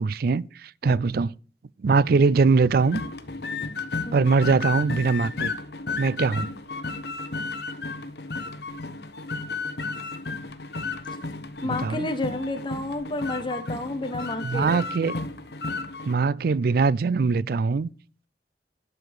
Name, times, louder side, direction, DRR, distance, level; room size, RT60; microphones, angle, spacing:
voice 1, 0.0-1.3 1.8-3.0 4.1-5.5 6.0-6.5 11.6-12.1 14.4-15.1 16.1-17.9, right 4 dB, 55° right, 0.4 m, -22 dB
sound 1, 2.8-16.1, left 3 dB, 65° left, 1.1 m, -33 dB
voice 2, 11.6-14.8, left 2 dB, 25° left, 1.4 m, -31 dB
11.5 x 7.0 x 4.7 m
head